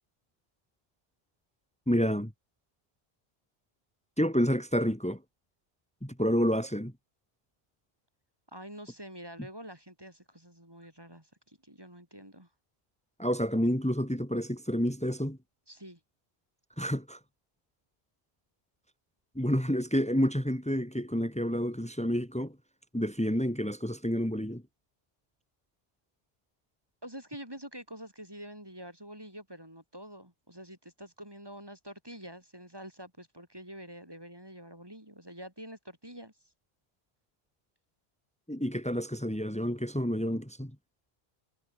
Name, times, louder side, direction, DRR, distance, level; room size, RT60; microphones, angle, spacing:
voice 1, 1.9-2.3 4.2-5.2 6.0-6.9 13.2-15.4 16.8-17.2 19.3-22.5 22.9-24.6 38.5-40.7, equal, 5° left, 3.3 m, -29 dB
voice 2, 8.5-12.5 15.7-16.0 27.0-36.3, equal, 20° right, 4.3 m, -47 dB
omnidirectional pair, 1.1 m